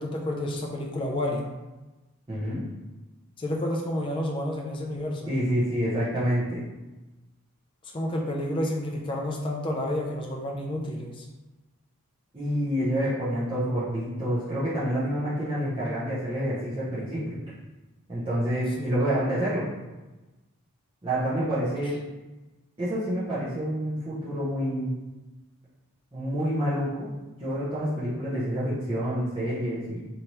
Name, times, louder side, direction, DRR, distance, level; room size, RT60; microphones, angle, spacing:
voice 1, 0.0-1.5 3.4-5.3 7.8-11.3 18.8-18.9, left 1 dB, 25° left, 0 dB, 0.3 m, -30 dB
voice 2, 2.3-2.7 5.3-6.6 12.3-17.4 18.1-19.6 21.0-22.0 22.8-24.9 26.1-27.1 27.4-30.1, equal, 20° right, -12 dB, 0.7 m, -28 dB
3.3 x 2.8 x 2.9 m, 1.1 s
head